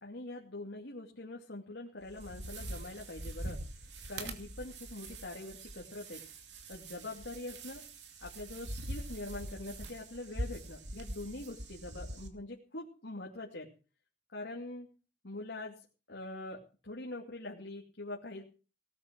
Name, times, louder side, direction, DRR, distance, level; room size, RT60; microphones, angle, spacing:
voice 1, 0.0-3.6 4.1-6.2 6.7-7.8 8.2-13.7 14.3-14.9 15.2-15.8 16.1-18.4, left 2 dB, 80° left, -1 dB, 2.6 m, -44 dB
sound 1, 2.0-12.3, right 1 dB, 80° right, 2.6 m, -43 dB
18.5 x 9.7 x 6.4 m, 0.37 s
head